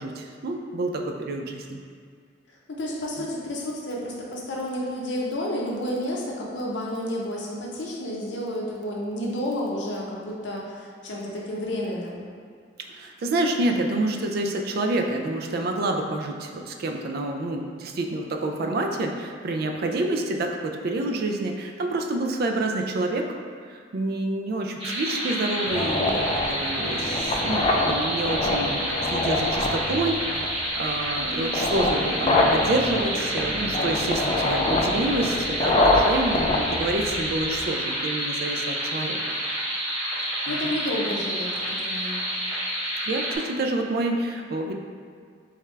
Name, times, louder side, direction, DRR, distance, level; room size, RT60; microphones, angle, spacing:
voice 1, 0.0-1.8 3.2-3.3 12.9-23.4 23.7-39.2 40.5-40.7 43.0-44.7, right 2 dB, 55° right, 3 dB, 0.4 m, -28 dB
voice 2, 2.5-12.2 31.2-31.5 40.3-42.2, left 1 dB, 70° left, -3 dB, 0.7 m, -31 dB
sound 1, 24.8-43.4, right 1 dB, 30° right, 0.9 m, -29 dB
sound 2, 25.7-37.7, left 2 dB, 30° left, 0.4 m, -25 dB
3.5 x 3.3 x 3.2 m, 2.1 s
head